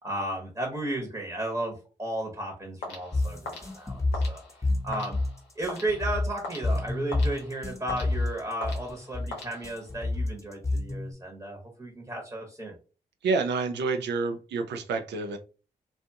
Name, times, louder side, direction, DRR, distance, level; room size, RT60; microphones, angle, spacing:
voice 1, 0.0-5.2 5.6-12.7, right 1 dB, 15° right, 1.0 m, -34 dB
sound 1, 2.8-10.1, left 3 dB, 90° left, 0.7 m, -42 dB
sound 2, 3.1-11.1, left 2 dB, 15° left, 0.8 m, -29 dB
voice 2, 13.2-15.4, right 4 dB, 75° right, 0.4 m, -28 dB
2.4 x 2.3 x 2.7 m
supercardioid pair, 40°, 18 cm